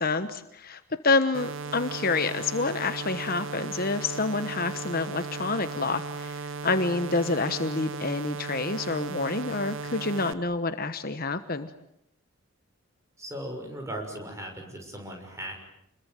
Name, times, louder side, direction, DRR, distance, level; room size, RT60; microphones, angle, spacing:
voice 1, 0.0-11.7, left 3 dB, 40° left, 10 dB, 1.2 m, -28 dB
sound 1, 1.3-10.3, right 4 dB, 60° right, 1.1 m, -36 dB
voice 2, 13.2-15.5, right 1 dB, 15° right, 3 dB, 6.3 m, -37 dB
29.5 x 21.5 x 9.4 m, 0.75 s
head